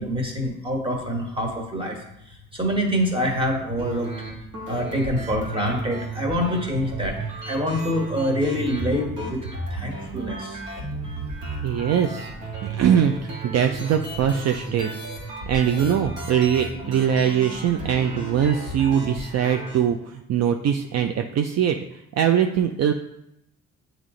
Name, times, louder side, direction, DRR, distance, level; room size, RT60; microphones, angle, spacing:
voice 1, 0.0-2.0 2.2-4.1 4.7-10.6, equal, 15° right, 0 dB, 1.5 m, -26 dB
sound 1, 3.8-19.8, right 3 dB, 90° right, 1.7 m, -34 dB
voice 2, 11.6-14.9 15.5-22.9, right 8 dB, 60° right, 5 dB, 0.5 m, -22 dB
8.0 x 3.1 x 3.8 m, 0.84 s
cardioid pair, 90°, 30 cm